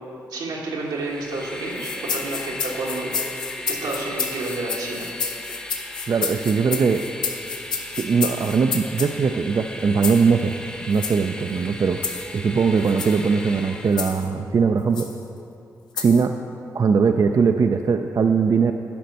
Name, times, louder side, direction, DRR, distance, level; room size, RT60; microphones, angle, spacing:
voice 1, 0.3-3.1 3.7-5.1, right 2 dB, 90° right, -3 dB, 1.6 m, -30 dB
Train, 0.8-14.3, left 1 dB, 15° left, 0.9 m, -37 dB
sound 1, 1.8-9.1 10.0-10.3 10.9-11.2 12.0-12.3 12.8-13.2 14.0-14.3 14.9-15.1 16.0-16.3, left 6 dB, 75° left, 1.1 m, -30 dB
voice 2, 6.1-7.0 8.0-10.5 10.9-12.0 12.3-15.1 16.0-16.3 16.7-18.7, right 5 dB, 50° right, 5 dB, 0.4 m, -20 dB
10.0 x 5.1 x 6.6 m, 2.7 s
supercardioid pair, 50°, 7 cm